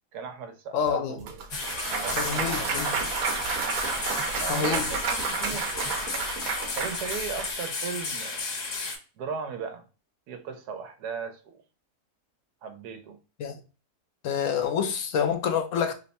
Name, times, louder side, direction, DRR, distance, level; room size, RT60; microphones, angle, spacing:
voice 1, 0.1-1.4 1.8-3.1 4.4-6.0 6.7-8.4 9.2-9.8 10.3-11.6 12.6-13.2, right 6 dB, 80° right, 1.2 m, -37 dB
voice 2, 0.7-1.2 2.1-3.0 4.5-4.9 13.4-13.6 14.2-15.9, left 7 dB, 65° left, 0.8 m, -27 dB
sound 1, 0.9-1.0 1.2-3.6 3.9-6.1, right 2 dB, 25° right, 0.9 m, -47 dB
Clapping / Cheering / Applause, 1.3-7.5, right 5 dB, 65° right, 1.1 m, -31 dB
sound 2, 1.5-9.0, left 3 dB, 80° left, 1.6 m, -33 dB
3.4 x 2.1 x 4.0 m
omnidirectional pair, 1.7 m